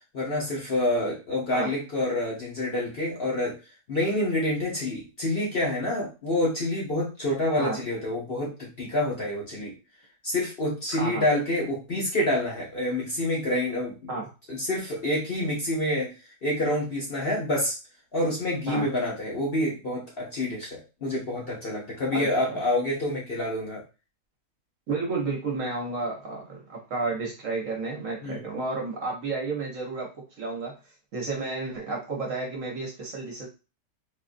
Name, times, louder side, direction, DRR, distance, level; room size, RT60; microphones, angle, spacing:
voice 1, 0.1-3.6 3.9-9.7 10.2-13.9 14.5-16.1 16.4-17.7 18.1-23.8 28.2-28.4, left 1 dB, 45° left, -3 dB, 0.8 m, -27 dB
voice 2, 10.9-11.2 14.1-14.3 18.7-18.9 22.1-22.6 24.9-30.7 31.1-33.5, right 3 dB, 55° right, -1 dB, 1.1 m, -31 dB
3.9 x 2.5 x 2.5 m, 0.30 s
omnidirectional pair, 1.9 m